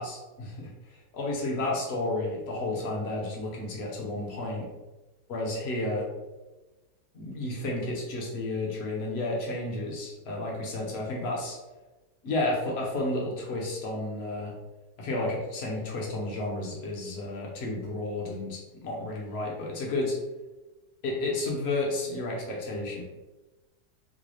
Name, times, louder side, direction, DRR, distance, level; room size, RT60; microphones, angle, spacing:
voice 1, 0.0-4.7 5.3-6.1 7.1-11.6 12.2-14.6 15.0-20.2 21.0-23.0, left 2 dB, 50° left, -2 dB, 1.0 m, -32 dB
3.8 x 2.3 x 3.1 m, 1.1 s
omnidirectional pair, 1.7 m